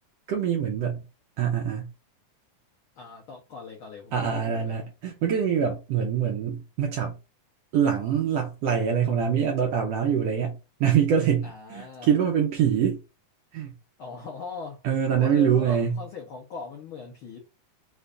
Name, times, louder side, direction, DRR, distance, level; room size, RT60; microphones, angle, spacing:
voice 1, 0.3-1.0 1.4-1.9 4.1-7.2 7.7-13.0 13.5-13.7 14.8-16.0, right 8 dB, 75° right, 1.5 m, -24 dB
voice 2, 2.9-4.8 11.4-12.1 14.0-14.8 15.1-17.4, left 5 dB, 85° left, 1.1 m, -40 dB
5.3 x 2.5 x 3.4 m
omnidirectional pair, 3.6 m